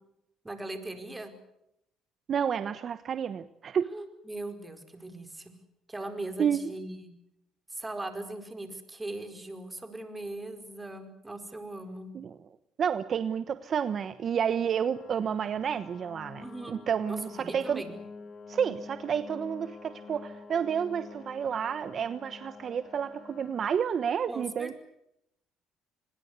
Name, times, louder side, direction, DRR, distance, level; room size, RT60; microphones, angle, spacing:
voice 1, 0.4-1.3 3.9-5.5 5.9-7.1 7.7-12.1 16.4-16.8 17.1-17.9 24.3-24.8, right 2 dB, 15° right, 8 dB, 4.9 m, -39 dB
voice 2, 2.3-3.9 6.4-6.6 12.1-12.3 12.8-17.8 18.5-24.8, right 7 dB, 50° right, 12 dB, 1.1 m, -30 dB
sound 1, 14.9-23.6, left 4 dB, 50° left, 4.1 m, -47 dB
26.0 x 21.0 x 8.2 m, 0.80 s
cardioid pair, 90°, 0 cm